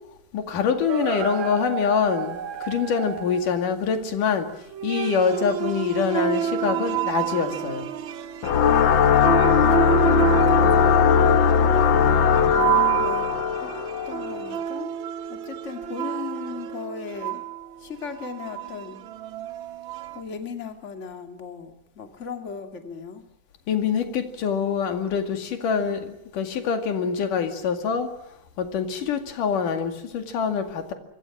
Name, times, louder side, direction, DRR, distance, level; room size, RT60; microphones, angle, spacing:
voice 1, 0.3-4.5 4.8-7.9 23.7-28.1 28.6-30.9, left 6 dB, 90° left, 6 dB, 3.9 m, -25 dB
sound 1, 0.9-3.5 4.7-20.2, right 9 dB, 80° right, 1.1 m, -29 dB
sound 2, 8.4-14.5, left 7 dB, 65° left, 1.2 m, -19 dB
voice 2, 10.5-11.3 12.5-13.7 14.1-14.9 15.3-17.4 17.8-19.0 20.1-23.2, left 6 dB, 25° left, 5 dB, 2.4 m, -37 dB
25.0 x 24.5 x 6.1 m, 0.85 s
omnidirectional pair, 3.6 m